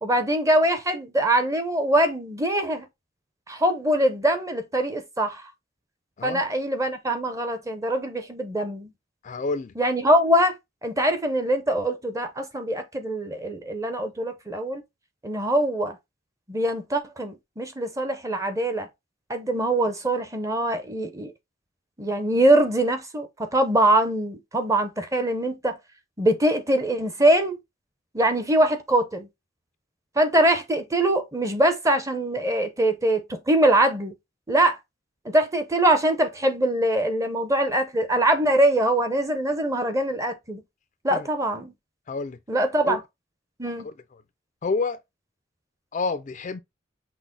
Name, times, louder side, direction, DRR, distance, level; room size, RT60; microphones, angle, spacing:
voice 1, 0.0-2.9 3.5-5.5 6.2-8.9 9.8-14.8 15.2-16.0 16.5-18.9 19.3-21.3 22.0-25.8 26.2-27.6 28.1-29.3 30.2-34.1 34.5-34.8 35.3-40.6 41.0-41.7 42.5-43.0 43.6-43.9, right 1 dB, 15° right, 0.7 m, -23 dB
voice 2, 9.2-9.7 41.1-41.3 42.1-42.4 42.9-43.0 44.6-45.0 45.9-46.6, left 4 dB, 40° left, 0.4 m, -28 dB
6.0 x 2.1 x 3.8 m
head